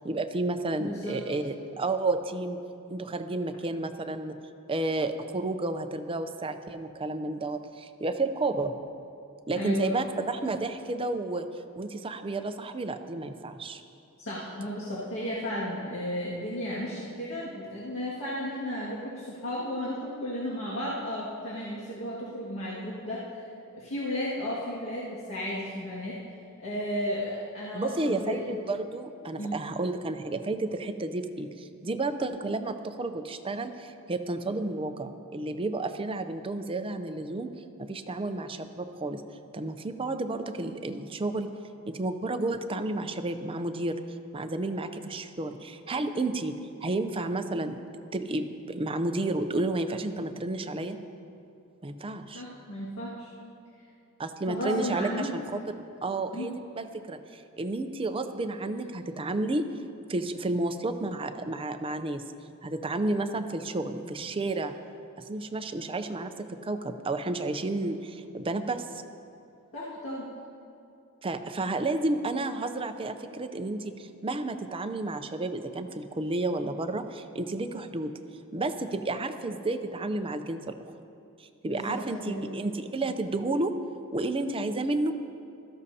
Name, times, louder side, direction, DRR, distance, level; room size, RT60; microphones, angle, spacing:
voice 1, 0.0-2.6 2.9-4.3 4.7-8.7 9.5-11.5 11.8-13.8 27.7-37.5 37.8-39.2 39.5-41.5 41.9-44.0 44.3-46.5 46.8-47.8 48.1-51.0 51.8-52.4 54.2-55.6 56.0-59.7 60.1-62.2 62.6-64.7 65.3-69.0 71.2-78.1 78.5-80.9 81.4-83.7 84.1-85.2, right 2 dB, 25° right, 8 dB, 0.5 m, -31 dB
voice 2, 0.8-1.2 9.5-9.9 14.2-23.3 23.7-26.2 26.6-28.4 29.4-29.6 52.3-53.3 54.5-55.3 56.3-56.5 69.7-70.3 81.6-82.5, left 1 dB, 60° left, -7 dB, 2.0 m, -34 dB
16.5 x 13.5 x 2.8 m, 2.6 s
head